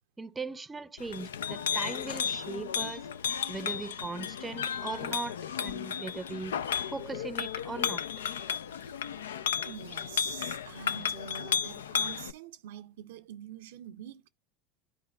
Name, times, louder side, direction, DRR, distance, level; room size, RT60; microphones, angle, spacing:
voice 1, 0.2-3.1 3.5-5.3 5.6-6.5 6.9-8.0, right 4 dB, 20° right, 0.6 m, -39 dB
Chink clink, 1.0-12.3, left 8 dB, 85° left, 0.3 m, -34 dB
voice 2, 9.6-14.3, right 9 dB, 80° right, 0.5 m, -45 dB
10.5 x 4.6 x 2.3 m
hypercardioid pair, 85°, 0 cm